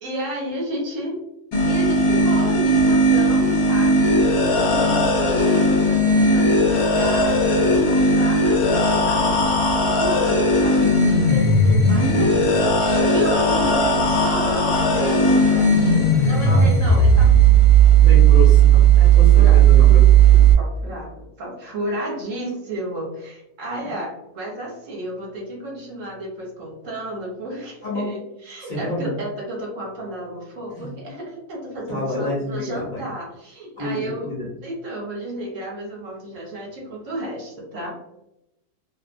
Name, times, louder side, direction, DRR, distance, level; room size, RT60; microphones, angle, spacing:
voice 1, 0.0-1.2 1.7-4.1 4.5-8.6 9.1-9.6 9.9-17.3 18.7-19.1 19.4-19.9 20.2-34.3 34.6-37.9, right 1 dB, 60° right, -2 dB, 1.2 m, -32 dB
sound 1, 1.5-20.5, right 4 dB, 75° left, 1.1 m, -16 dB
voice 2, 18.0-20.1 27.8-28.1 28.6-29.1 30.7-30.9 31.9-33.0 33.8-34.5, left 1 dB, 45° left, -6 dB, 0.7 m, -28 dB
2.7 x 2.0 x 2.5 m, 0.85 s
omnidirectional pair, 1.6 m